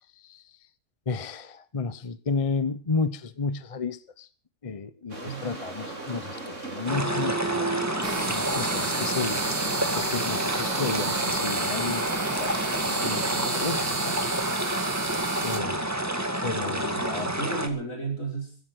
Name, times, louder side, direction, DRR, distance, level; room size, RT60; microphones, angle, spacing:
voice 1, 1.1-4.3 4.6-7.8 8.3-9.4 9.9-12.1 12.4-12.5 12.8-14.1 15.4-16.0 16.4-17.3, left 4 dB, 30° left, 14 dB, 0.9 m, -32 dB
voice 2, 5.1-5.5 16.8-18.6, right 3 dB, 75° left, 1 dB, 6.2 m, -34 dB
sound 1, 5.1-13.8, right 2 dB, 60° right, 4.3 m, -39 dB
sound 2, 6.9-17.7, right 1 dB, 10° right, 1.9 m, -29 dB
sound 3, 8.0-15.6, right 3 dB, 45° right, 2.1 m, -32 dB
15.5 x 13.5 x 6.4 m, 0.38 s
omnidirectional pair, 1.4 m